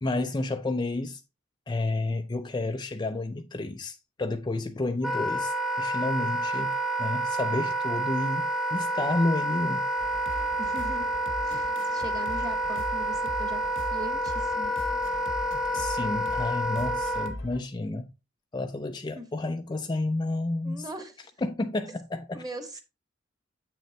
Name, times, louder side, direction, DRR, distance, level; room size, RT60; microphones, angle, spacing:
voice 1, 0.0-1.2 1.7-8.4 8.7-9.9 15.7-18.1 18.5-20.9 21.4-22.4, left 2 dB, 25° left, 0.4 m, -30 dB
Wind instrument woodwind instrument, 5.0-17.3, right 1 dB, ahead, 0.9 m, -29 dB
sound 1, 10.0-17.6, left 1 dB, 85° left, 1.3 m, -41 dB
voice 2, 10.6-11.1 11.4-14.7 19.1-19.2 20.6-21.2 22.3-22.8, right 1 dB, 20° right, 1.5 m, -40 dB
7.8 x 6.6 x 3.1 m
head